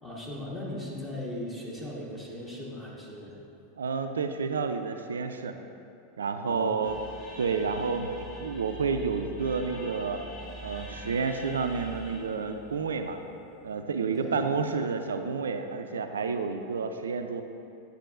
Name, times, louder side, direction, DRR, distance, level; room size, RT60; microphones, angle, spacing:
voice 1, 0.0-3.4 6.4-6.8 14.1-14.4, left 1 dB, 10° left, -5 dB, 1.1 m, -38 dB
voice 2, 3.8-5.6 6.2-7.0 7.4-10.2 10.6-13.2 13.6-17.4, right 5 dB, 70° right, 7 dB, 0.4 m, -30 dB
sound 1, 6.8-13.8, equal, 35° left, 1.5 m, -44 dB
9.2 x 6.7 x 2.4 m, 2.7 s
figure-of-eight pair, 90°, 0 cm